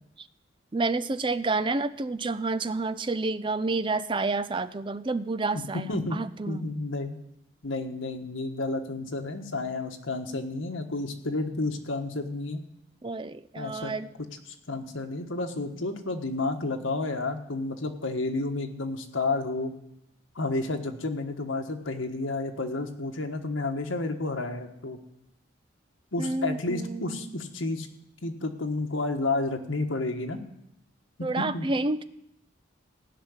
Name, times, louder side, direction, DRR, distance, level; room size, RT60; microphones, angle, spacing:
voice 1, 0.7-6.7 13.0-14.1 26.2-27.4 31.2-32.0, right 3 dB, 25° right, 13 dB, 0.4 m, -29 dB
voice 2, 5.5-7.2 7.6-12.6 13.6-13.9 14.7-19.7 20.3-25.0 26.1-27.9 28.2-30.4 31.2-31.7, left 2 dB, 80° left, 5 dB, 1.4 m, -31 dB
16.0 x 6.0 x 9.7 m, 0.81 s
head